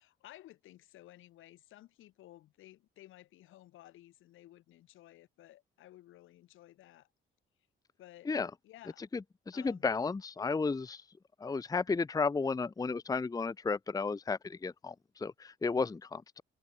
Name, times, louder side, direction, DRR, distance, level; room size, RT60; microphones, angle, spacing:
voice 1, 0.0-7.1 8.0-8.3 8.6-9.1 9.5-9.9, left 14 dB, 85° left, 7.1 m, -56 dB
voice 2, 9.1-11.0 11.4-16.4, left 4 dB, 20° left, 0.6 m, -33 dB
cardioid pair, 90°, 20 cm